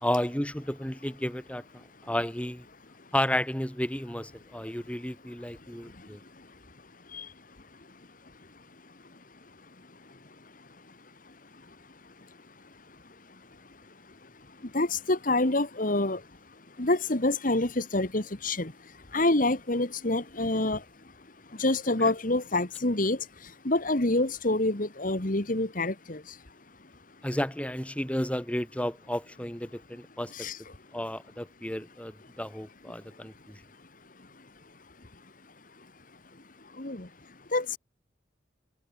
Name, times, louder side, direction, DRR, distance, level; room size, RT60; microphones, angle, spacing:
voice 1, 0.0-2.7 3.1-6.2 22.0-22.1 27.2-30.5 30.9-33.6, left 1 dB, 5° left, 2.3 m, -32 dB
voice 2, 14.7-16.2 16.8-18.7 19.1-20.8 21.6-23.2 23.7-26.2 30.3-30.6 36.8-37.1 37.5-37.8, left 2 dB, 45° left, 2.0 m, -27 dB
head